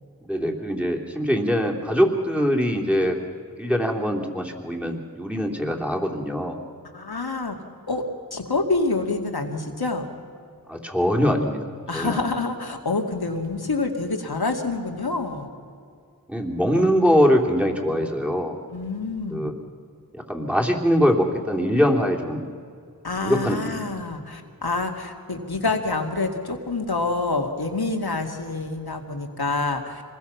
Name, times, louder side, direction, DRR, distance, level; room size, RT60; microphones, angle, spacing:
voice 1, 0.2-3.2 3.6-6.6 10.7-12.2 16.3-18.5 19.3-19.5 20.1-22.5 23.2-23.8, equal, 5° right, 1 dB, 3.0 m, -22 dB
voice 2, 6.9-7.6 7.9-8.0 8.3-10.1 11.9-15.5 18.7-19.5 23.0-30.0, left 3 dB, 90° left, 3 dB, 2.2 m, -27 dB
26.0 x 20.5 x 5.8 m, 2.3 s
wide cardioid pair, 40°, 37 cm